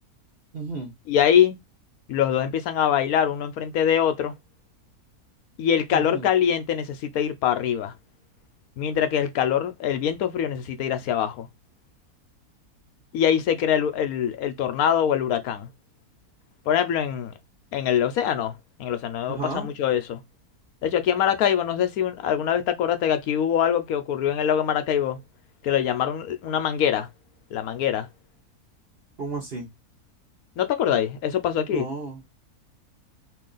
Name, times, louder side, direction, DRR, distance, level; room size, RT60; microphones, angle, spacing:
voice 1, 0.5-0.9 5.9-6.3 19.3-19.7 29.2-29.7 31.6-32.2, right 3 dB, 45° right, 1.2 m, -33 dB
voice 2, 1.1-1.6 2.1-4.3 5.6-7.9 8.8-11.5 13.1-15.7 16.7-17.3 17.7-18.5 18.8-20.2 20.8-25.2 25.6-27.1 27.5-28.1 30.6-31.9, left 9 dB, 70° left, 1.1 m, -23 dB
3.0 x 2.8 x 3.8 m
omnidirectional pair, 1.6 m